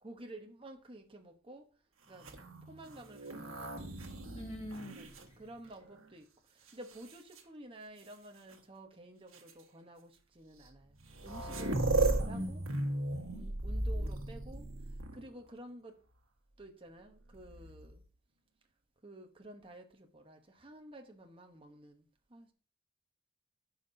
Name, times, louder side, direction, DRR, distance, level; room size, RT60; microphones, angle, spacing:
voice 1, 0.0-1.7 2.1-2.3 2.7-3.9 5.0-12.6 13.3-14.7 15.1-16.0 16.6-18.0 19.0-22.5, right 1 dB, 25° right, 3 dB, 0.9 m, -52 dB
sound 1, 2.1-6.0 6.7-7.4 8.5-8.6 9.3-9.5 10.6-10.7 10.9-15.4 17.3-18.0, right 2 dB, 75° right, 1.4 m, -36 dB
voice 2, 4.4-5.0 12.3-12.5, left 1 dB, 30° left, 2 dB, 1.7 m, -44 dB
13.5 x 5.6 x 2.7 m, 0.42 s
head